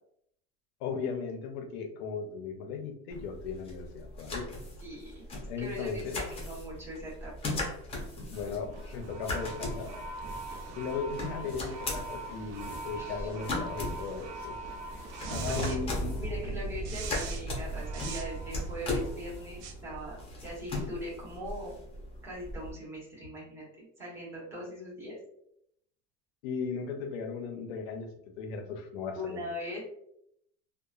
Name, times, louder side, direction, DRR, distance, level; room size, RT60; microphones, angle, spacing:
voice 1, 0.8-4.5 5.5-6.2 8.3-9.9 10.7-14.6 15.2-16.1 26.4-28.1 28.4-29.5, left 5 dB, 85° left, 6 dB, 0.6 m, -37 dB
sound 1, 3.1-22.7, left 2 dB, 20° left, 0.6 m, -39 dB
voice 2, 4.8-5.2 5.6-7.6 12.9-13.3 15.4-15.8 16.2-20.2 20.4-21.7 22.2-25.2 29.1-29.8, left 1 dB, 10° right, -8 dB, 0.9 m, -41 dB
sound 2, 8.3-20.7, right 2 dB, 60° right, 0.5 m, -39 dB
2.9 x 2.1 x 2.3 m, 0.73 s
cardioid pair, 155°, 30 cm